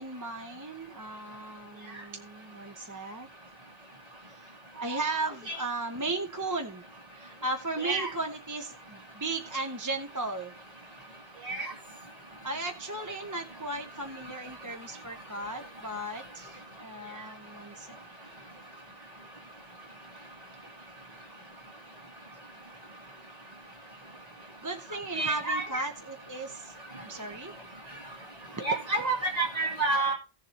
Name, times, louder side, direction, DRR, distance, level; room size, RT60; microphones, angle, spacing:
voice 1, 0.0-3.3 4.2-6.8 7.1-10.5 12.4-18.0 24.6-26.7 27.0-27.5, right 2 dB, 20° right, 3 dB, 0.9 m, -36 dB
voice 2, 7.8-8.1 11.4-11.7 25.1-25.8 28.6-30.1, right 3 dB, 35° right, -1 dB, 2.7 m, -29 dB
16.5 x 7.3 x 3.0 m, 0.33 s
omnidirectional pair, 1.1 m